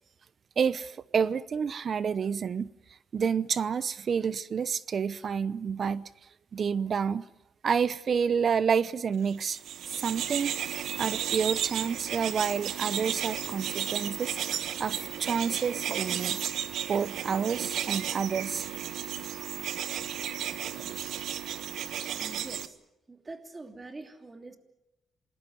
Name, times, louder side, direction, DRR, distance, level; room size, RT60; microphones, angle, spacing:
voice 1, 0.6-2.7 3.1-6.1 6.5-7.2 7.6-9.6 10.0-10.5 11.0-14.4 14.8-16.4 16.9-18.7 19.4-19.5, right 6 dB, 50° right, 0.8 m, -29 dB
sound 1, 9.4-22.7, right 10 dB, 75° right, 1.2 m, -34 dB
voice 2, 20.5-21.1 22.2-22.8 23.1-24.6, right 3 dB, 25° right, 3.1 m, -45 dB
27.5 x 20.0 x 8.0 m
cardioid pair, 90°, 0 cm